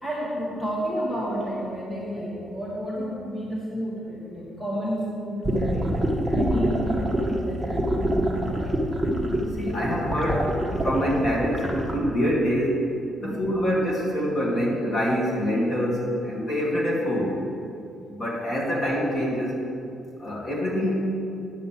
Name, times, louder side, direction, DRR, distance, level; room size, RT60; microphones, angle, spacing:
voice 1, 0.0-8.9 13.2-13.4, equal, 15° left, -6 dB, 1.9 m, -32 dB
sound 1, 5.4-11.9, right 1 dB, ahead, 1.4 m, -25 dB
voice 2, 9.6-10.5 10.8-12.8 13.2-17.3 18.1-19.6 20.2-20.9, equal, 40° left, -4 dB, 2.5 m, -25 dB
10.0 x 5.4 x 7.6 m, 2.5 s
cardioid pair, 130°, 0 cm